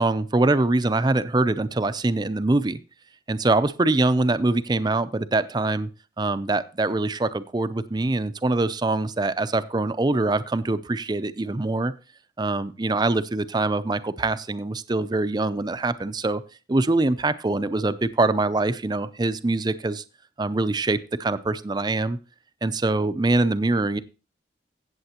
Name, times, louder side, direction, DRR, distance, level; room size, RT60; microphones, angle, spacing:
voice 1, 0.0-2.8 3.3-5.9 6.2-11.9 12.4-16.4 16.7-20.0 20.4-22.2 22.6-24.0, right 2 dB, 25° right, 13 dB, 0.5 m, -24 dB
16.0 x 7.6 x 2.9 m, 0.32 s
head